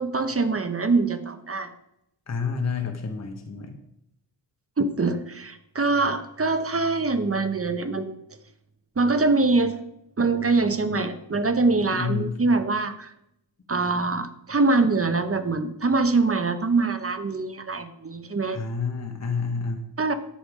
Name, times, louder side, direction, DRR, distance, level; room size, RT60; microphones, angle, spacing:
voice 1, 0.0-1.7 4.8-8.1 9.0-9.8 10.2-13.1 13.7-18.6 20.0-20.1, right 3 dB, 30° right, 9 dB, 0.8 m, -24 dB
voice 2, 2.3-3.8 11.9-12.4 18.5-19.9, left 5 dB, 35° left, 4 dB, 1.2 m, -29 dB
10.0 x 7.0 x 4.9 m, 0.81 s
wide cardioid pair, 130°, 43 cm